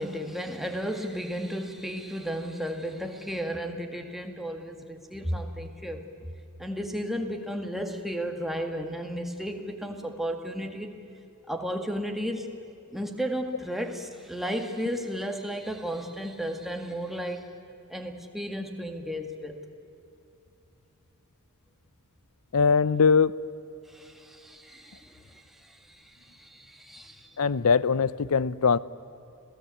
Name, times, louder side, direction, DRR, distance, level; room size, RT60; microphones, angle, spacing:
voice 1, 0.0-6.0 6.6-10.9 11.5-12.5 12.9-17.5 17.9-19.6 23.9-27.3, equal, ahead, 3 dB, 1.9 m, -34 dB
voice 2, 22.5-23.3 27.4-28.8, left 5 dB, 70° left, 18 dB, 0.6 m, -21 dB
27.0 x 17.5 x 8.4 m, 2.8 s
head